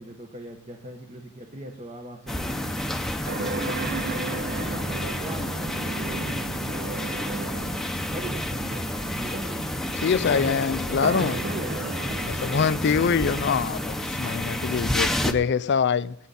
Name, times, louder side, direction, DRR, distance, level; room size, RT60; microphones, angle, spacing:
voice 1, 0.0-2.9 3.6-5.6 6.0-6.6 8.1-11.8, right 1 dB, 30° right, 1.3 m, -40 dB
sound 1, 2.3-15.3, left 1 dB, ahead, 0.8 m, -30 dB
sound 2, 3.2-7.9 8.6-8.7 10.8-13.5, right 4 dB, 50° right, 0.6 m, -35 dB
voice 2, 10.0-11.4 12.3-16.2, left 6 dB, 55° left, 0.4 m, -24 dB
22.5 x 9.1 x 4.2 m
head